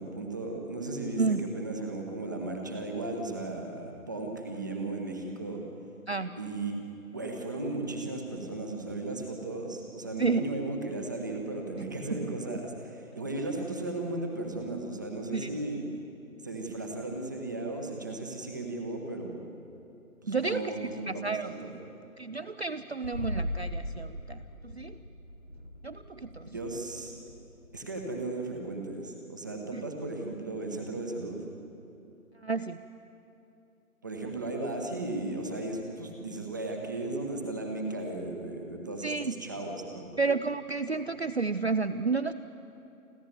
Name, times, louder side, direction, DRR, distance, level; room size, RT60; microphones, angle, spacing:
voice 1, 0.0-5.6 6.4-6.8 7.1-15.9 16.4-19.5 20.2-21.8 26.4-27.1 27.7-31.4 34.0-40.1, right 2 dB, 15° right, 2 dB, 1.0 m, -35 dB
voice 2, 20.3-20.6 21.1-21.5 22.2-25.0 25.8-26.5 29.7-29.8 32.4-32.8 39.0-39.3 40.2-42.3, right 4 dB, 50° right, 12 dB, 0.5 m, -31 dB
sound 1, 23.0-28.6, left 1 dB, 30° left, 0.7 m, -39 dB
29.0 x 12.0 x 9.3 m, 2.9 s
figure-of-eight pair, 155°, 44 cm